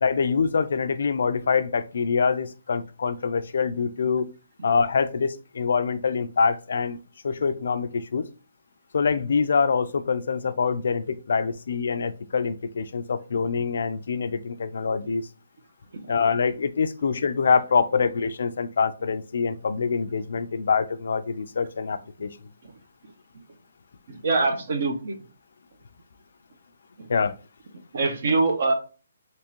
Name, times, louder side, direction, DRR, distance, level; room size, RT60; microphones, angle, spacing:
voice 1, 0.0-4.3 4.6-7.0 7.2-8.3 8.9-15.3 16.1-22.4 27.1-27.4, left 5 dB, 65° left, 12 dB, 0.3 m, -25 dB
voice 2, 24.1-25.2 27.0-27.1 27.7-28.7, right 3 dB, 55° right, 6 dB, 0.7 m, -24 dB
3.5 x 2.9 x 2.9 m, 0.35 s
hypercardioid pair, 165°, 0 cm